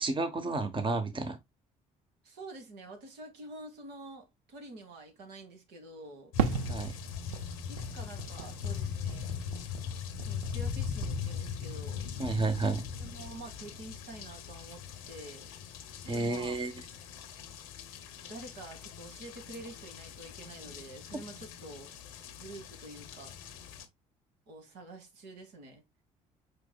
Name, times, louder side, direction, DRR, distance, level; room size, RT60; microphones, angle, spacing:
voice 1, 0.0-1.4 6.7-7.0 12.2-12.8 16.1-16.7, right 3 dB, 30° right, 1.0 m, -31 dB
voice 2, 2.2-6.3 7.7-9.4 10.2-12.1 13.0-15.5 16.0-16.5 18.3-21.9 22.3-23.4 24.5-25.8, right 2 dB, 70° right, 1.5 m, -48 dB
sound 1, 6.3-23.9, left 7 dB, 85° left, 0.7 m, -40 dB
Fireworks, 6.4-10.7 11.0-11.8, right 8 dB, 85° right, 0.5 m, -37 dB
5.2 x 4.5 x 2.3 m
hypercardioid pair, 55°, 18 cm